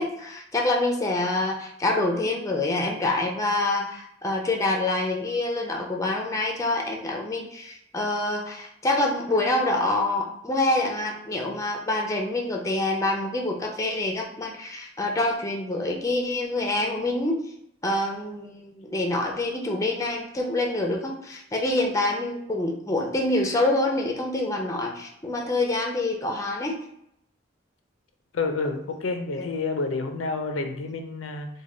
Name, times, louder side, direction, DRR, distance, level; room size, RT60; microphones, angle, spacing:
voice 1, 0.0-17.4 17.8-26.8 29.3-29.5, left 2 dB, 15° left, 1 dB, 0.5 m, -26 dB
voice 2, 28.3-31.5, left 3 dB, 80° left, 6 dB, 0.5 m, -29 dB
3.3 x 2.2 x 3.7 m, 0.76 s
head